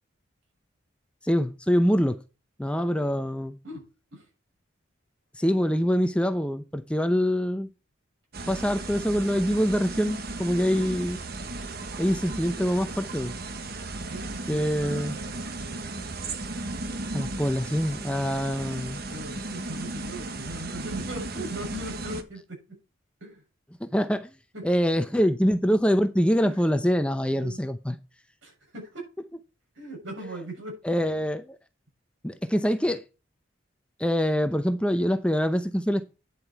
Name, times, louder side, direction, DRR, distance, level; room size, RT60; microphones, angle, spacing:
voice 1, 1.2-2.2 2.6-3.6 5.3-7.7 8.5-11.2 12.0-13.3 14.5-15.2 17.1-19.0 23.8-24.3 24.6-28.0 30.8-31.6 32.2-33.0 34.0-36.0, equal, 5° left, 0.6 m, -25 dB
sound 1, 8.3-22.2, right 2 dB, 50° right, 1.2 m, -35 dB
voice 2, 14.0-16.1 19.1-22.8 23.2-23.4 24.5-24.6 26.4-26.8 27.3-27.6 28.4-29.1 29.7-30.8, right 1 dB, 70° right, 7.2 m, -40 dB
10.0 x 7.6 x 4.6 m
head